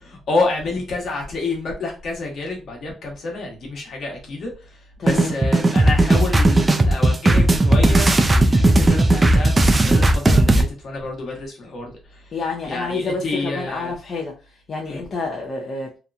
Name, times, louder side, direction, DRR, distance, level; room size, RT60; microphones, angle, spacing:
voice 1, 0.0-12.4 12.6-13.9 14.8-15.0, left 3 dB, 60° left, 0 dB, 1.1 m, -28 dB
voice 2, 5.0-5.3 12.3-14.3 14.7-15.9, left 3 dB, 45° left, -1 dB, 0.5 m, -28 dB
sound 1, 5.1-10.6, right 2 dB, 25° right, 0.4 m, -16 dB
2.8 x 2.2 x 2.5 m, 0.33 s
cardioid pair, 90°, 0 cm